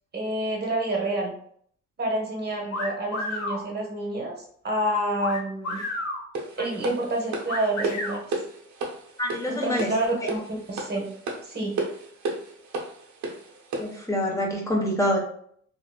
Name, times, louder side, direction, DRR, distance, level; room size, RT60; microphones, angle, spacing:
voice 1, 0.1-1.3 2.0-4.3 4.6-5.8 6.6-8.2 9.5-11.1 11.4-11.8, right 1 dB, 35° right, 0 dB, 1.0 m, -28 dB
sound 1, 2.7-3.6 5.2-6.2 7.5-8.2, left 1 dB, 60° left, 0.8 m, -31 dB
sound 2, 6.3-14.0, right 3 dB, 70° right, 0.7 m, -33 dB
voice 2, 9.2-9.9 13.8-15.2, left 1 dB, 10° left, -2 dB, 0.9 m, -26 dB
3.0 x 2.6 x 2.2 m, 0.62 s
cardioid pair, 90°, 30 cm